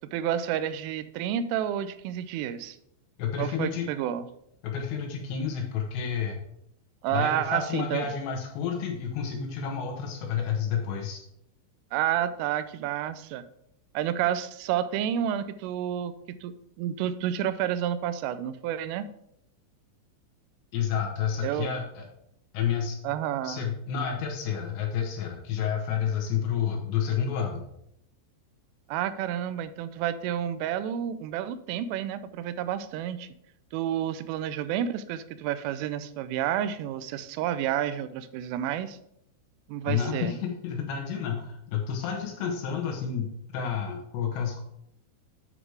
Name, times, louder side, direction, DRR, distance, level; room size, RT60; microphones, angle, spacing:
voice 1, 0.1-2.8 3.4-4.3 7.0-8.1 11.9-13.5 13.9-19.1 21.4-21.7 23.0-23.6 28.9-33.3 33.7-39.0 39.7-40.3, right 10 dB, 90° right, 13 dB, 3.2 m, -30 dB
voice 2, 3.2-3.9 4.6-6.4 7.1-11.2 20.7-22.1 22.5-23.0 23.4-27.6 39.8-44.6, left 7 dB, 70° left, 1 dB, 3.2 m, -30 dB
9.4 x 5.0 x 4.8 m, 0.75 s
omnidirectional pair, 5.6 m